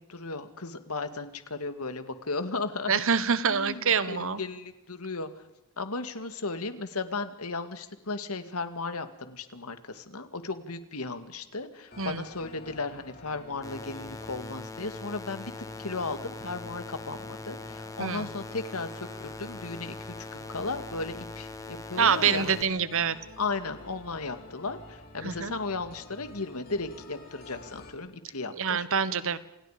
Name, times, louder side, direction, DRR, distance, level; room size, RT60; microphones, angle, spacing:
voice 1, 0.0-3.0 3.5-5.3 5.8-15.5 15.8-22.7 23.4-28.9, left 3 dB, 90° left, 9 dB, 2.2 m, -35 dB
voice 2, 2.9-4.4 12.0-12.2 18.0-18.3 22.0-23.2 25.2-25.5 28.6-29.4, right 6 dB, 65° right, 14 dB, 1.3 m, -26 dB
sound 1, 11.9-27.9, left 2 dB, 45° left, 6.4 m, -49 dB
sound 2, 13.6-22.6, left 2 dB, 15° left, 1.2 m, -41 dB
29.0 x 27.5 x 5.1 m, 0.85 s
head